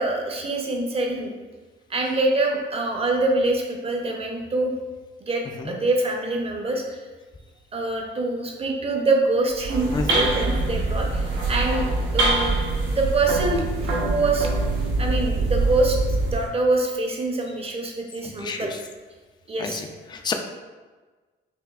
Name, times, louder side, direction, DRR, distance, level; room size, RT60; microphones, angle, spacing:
voice 1, 0.0-1.3 1.9-4.7 5.2-7.0 7.7-11.9 12.1-12.5 12.9-14.5 15.0-16.0 16.3-18.7 19.5-19.8, right 2 dB, 30° right, 1 dB, 0.7 m, -25 dB
sound 1, 9.5-16.5, right 2 dB, 75° right, 0.9 m, -24 dB
voice 2, 9.9-10.3 18.4-18.7 19.6-19.8 20.1-20.3, left 5 dB, 20° left, 5 dB, 0.3 m, -28 dB
4.5 x 2.6 x 2.4 m, 1.3 s
cardioid pair, 90°, 20 cm